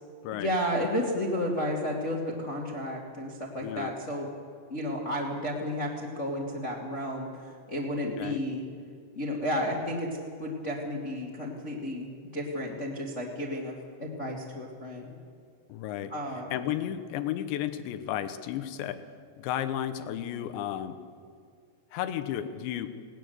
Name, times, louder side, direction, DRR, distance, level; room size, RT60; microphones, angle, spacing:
voice 1, 0.3-4.3 4.7-7.3 7.7-8.6 9.1-10.1 10.4-13.7 14.0-15.1 16.1-16.5, equal, 25° left, -2 dB, 1.7 m, -32 dB
voice 2, 15.7-16.1 16.5-19.0 19.4-21.0 21.9-22.9, left 11 dB, 80° left, 11 dB, 3.4 m, -33 dB
19.5 x 19.0 x 7.9 m, 2.3 s
omnidirectional pair, 5.1 m